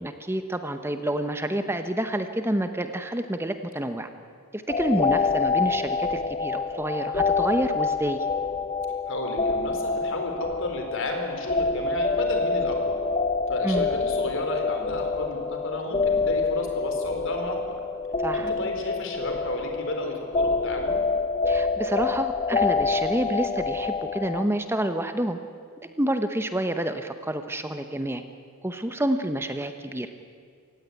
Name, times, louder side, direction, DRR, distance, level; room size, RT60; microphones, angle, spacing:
voice 1, 0.0-4.1 4.5-8.3 13.6-13.9 18.2-18.5 21.5-25.4 26.0-28.2 28.6-30.1, right 1 dB, 10° right, 8 dB, 0.9 m, -28 dB
sound 1, 4.7-24.5, left 4 dB, 25° left, 0.8 m, -27 dB
voice 2, 9.1-13.0 13.5-17.8 18.3-21.0, left 2 dB, 60° left, 3 dB, 4.3 m, -32 dB
27.5 x 16.0 x 9.6 m, 2.2 s
head